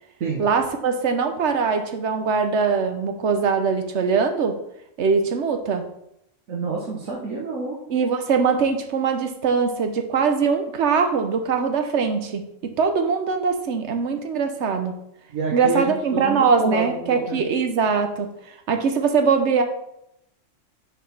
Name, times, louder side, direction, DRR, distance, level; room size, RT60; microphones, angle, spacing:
voice 1, 0.4-4.6 5.0-5.8 7.9-12.4 12.8-14.9 15.5-18.3 18.7-19.6, right 5 dB, 65° right, 6 dB, 1.1 m, -22 dB
voice 2, 6.5-7.7 15.3-17.4, right 4 dB, 85° right, -4 dB, 1.5 m, -28 dB
6.2 x 4.5 x 5.3 m, 0.80 s
omnidirectional pair, 1.3 m